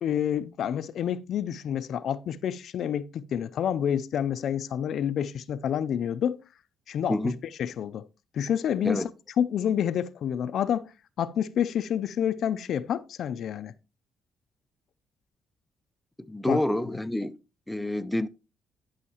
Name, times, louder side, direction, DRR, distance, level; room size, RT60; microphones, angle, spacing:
voice 1, 0.0-6.4 6.9-7.1 7.6-8.1 8.3-9.0 9.4-10.9 11.2-13.7 16.5-16.6, left 9 dB, 70° left, 0.5 m, -28 dB
voice 2, 16.2-17.4 17.7-18.3, left 1 dB, 5° left, 0.5 m, -28 dB
11.0 x 5.7 x 2.9 m
cardioid pair, 90°, 0 cm